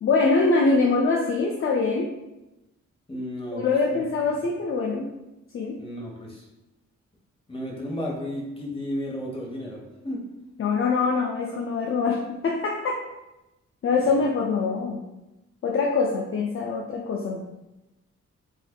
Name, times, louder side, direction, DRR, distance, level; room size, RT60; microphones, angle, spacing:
voice 1, 0.0-2.1 3.5-5.1 5.5-5.8 10.6-13.0 13.8-15.0 15.6-17.5, left 4 dB, 45° left, 1 dB, 0.5 m, -24 dB
voice 2, 3.1-4.0 5.8-6.4 7.5-10.2, equal, 20° left, -3 dB, 1.2 m, -33 dB
4.8 x 2.5 x 2.3 m, 0.97 s
cardioid pair, 70°, 29 cm